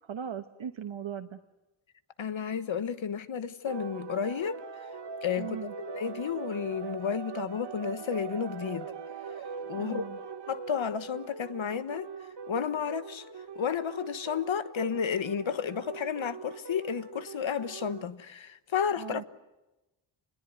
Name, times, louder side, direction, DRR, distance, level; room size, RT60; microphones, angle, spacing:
voice 1, 0.0-1.4 5.4-5.7 9.7-10.2 19.0-19.2, right 8 dB, 80° right, 1.3 m, -38 dB
voice 2, 2.2-4.6 5.2-5.6 5.9-8.9 9.7-10.1 10.5-12.1 12.5-13.2 13.5-19.2, left 7 dB, 75° left, 1.4 m, -32 dB
sound 1, 3.7-18.0, right 6 dB, 60° right, 1.5 m, -42 dB
28.0 x 22.0 x 9.6 m
wide cardioid pair, 165°, 47 cm